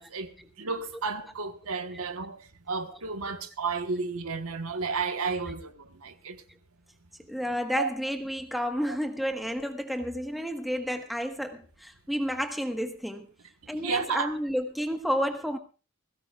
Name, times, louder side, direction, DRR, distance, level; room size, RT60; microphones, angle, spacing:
voice 1, 0.0-6.4 7.8-7.9 8.9-9.0 13.7-14.3, right 4 dB, 80° right, 1.3 m, -32 dB
voice 2, 7.3-13.3 13.7-15.6, equal, ahead, 1.4 m, -31 dB
20.5 x 17.0 x 2.4 m
head